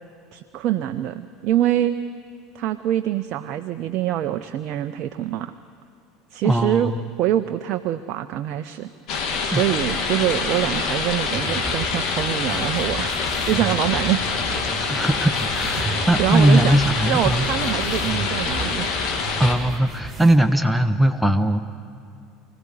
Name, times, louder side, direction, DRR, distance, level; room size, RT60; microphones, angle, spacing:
voice 1, 0.3-2.0 2.5-5.5 6.3-6.9 7.2-8.9 9.4-14.3 15.7-19.1, right 12 dB, 50° right, 10 dB, 0.5 m, -25 dB
voice 2, 6.4-6.9 9.5-9.6 14.8-17.5 19.4-21.6, right 1 dB, ahead, 7 dB, 0.8 m, -19 dB
sound 1, 9.1-19.5, left 4 dB, 50° left, 2.1 m, -25 dB
sound 2, 11.3-20.4, right 3 dB, 20° right, 2.4 m, -34 dB
24.5 x 15.0 x 8.0 m, 2.4 s
figure-of-eight pair, 70°, 0 cm